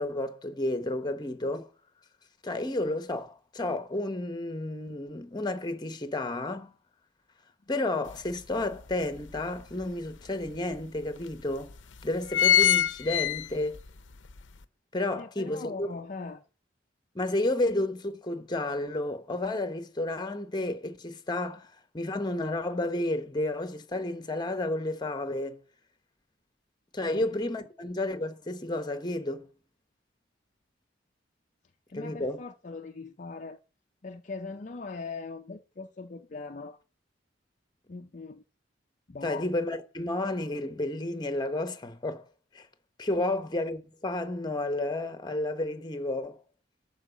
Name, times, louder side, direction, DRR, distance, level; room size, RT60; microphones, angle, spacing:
voice 1, 0.0-1.7 2.4-6.7 7.7-11.7 12.0-13.8 14.9-15.9 17.1-21.7 21.9-25.6 26.9-29.5 31.9-32.4 39.2-42.2 42.5-42.7 43.0-46.4, left 2 dB, 25° left, 1.0 m, -31 dB
sound 1, 8.1-8.2 8.7-9.8 10.5-10.6 10.8-10.9 11.6-11.8 12.1-13.9 14.3-14.4, left 10 dB, 85° left, 0.7 m, -24 dB
voice 2, 15.2-16.4 27.1-27.2 31.9-33.6 34.0-36.8 37.9-38.4 39.1-39.5, left 4 dB, 45° left, 0.5 m, -40 dB
12.0 x 4.7 x 7.0 m
head